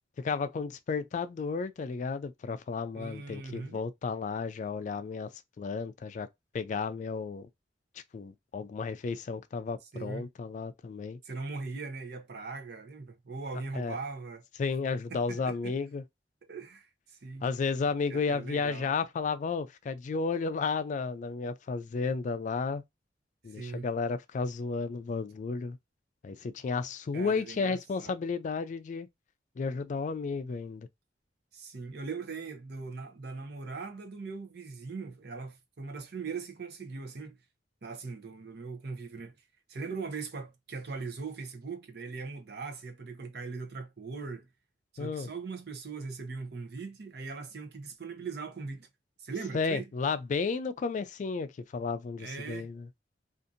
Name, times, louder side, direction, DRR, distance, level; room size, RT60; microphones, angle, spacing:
voice 1, 0.2-5.3 5.6-6.3 6.5-7.5 8.1-11.2 13.7-14.0 14.6-16.0 17.4-22.8 23.4-25.8 26.2-29.1 29.6-30.9 45.0-45.3 49.5-52.9, left 4 dB, 45° left, 0.3 m, -33 dB
voice 2, 2.9-3.8 9.9-10.3 11.2-14.4 15.1-15.8 16.4-17.5 18.1-18.9 23.5-23.9 27.1-28.2 31.5-37.4 37.8-39.3 39.7-44.5 44.9-48.9 49.2-49.8 52.2-52.7, right 4 dB, 65° right, 0.7 m, -40 dB
2.7 x 2.5 x 2.5 m
head